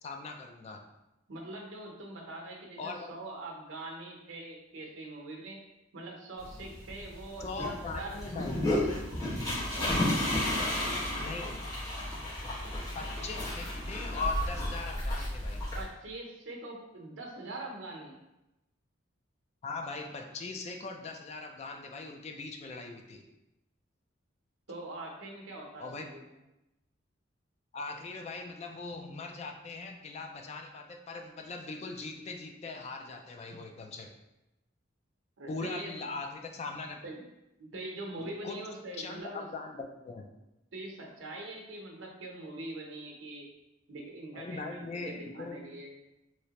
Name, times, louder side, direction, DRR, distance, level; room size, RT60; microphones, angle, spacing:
voice 1, 0.0-0.8 2.8-3.2 7.4-8.7 11.2-11.6 12.9-15.6 19.6-23.2 25.8-26.1 27.7-34.1 35.5-37.0 38.2-38.6 38.9-40.3 44.3-45.6, left 3 dB, 35° left, 3 dB, 0.3 m, -40 dB
voice 2, 1.3-5.6 5.9-8.2 9.4-10.6 15.7-18.2 24.7-26.3 35.4-36.0 37.0-37.2 37.6-39.5 40.7-43.5 43.9-45.9, right 2 dB, 80° right, 1 dB, 0.7 m, -43 dB
sound 1, 6.4-15.8, left 1 dB, 20° left, 1.3 m, -33 dB
3.1 x 2.8 x 2.9 m, 0.94 s
head